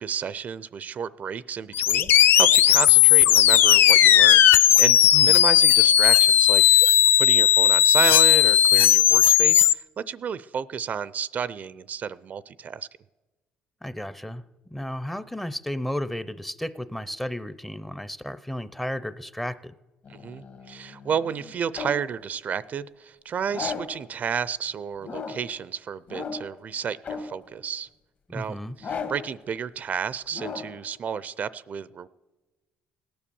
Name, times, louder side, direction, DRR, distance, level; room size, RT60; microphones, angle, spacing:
voice 1, 0.0-6.8 7.2-12.9 20.1-27.9 28.3-32.1, right 7 dB, 45° right, 18 dB, 0.5 m, -31 dB
sound 1, 1.7-9.7, left 11 dB, 70° left, 0.4 m, -16 dB
voice 2, 13.8-19.7 28.3-28.8, left 1 dB, 5° left, 15 dB, 0.6 m, -33 dB
sound 2, 20.1-22.1 23.5-24.1 25.0-25.6 26.1-26.6 27.0-27.5 28.8-29.4 30.3-30.9, left 5 dB, 50° left, 1.7 m, -36 dB
17.5 x 10.0 x 7.0 m, 1.2 s
cardioid pair, 100°, 4 cm